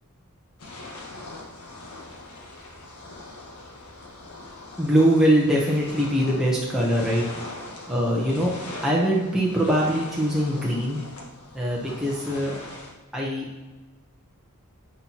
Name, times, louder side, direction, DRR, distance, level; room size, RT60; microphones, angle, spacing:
sound 1, 0.6-12.9, left 2 dB, 80° left, 1.4 m, -41 dB
voice 1, 4.8-7.2 7.9-8.5 8.8-11.0 11.5-12.6 13.1-13.7, equal, ahead, -5 dB, 0.9 m, -22 dB
9.4 x 4.5 x 2.9 m, 1.2 s
head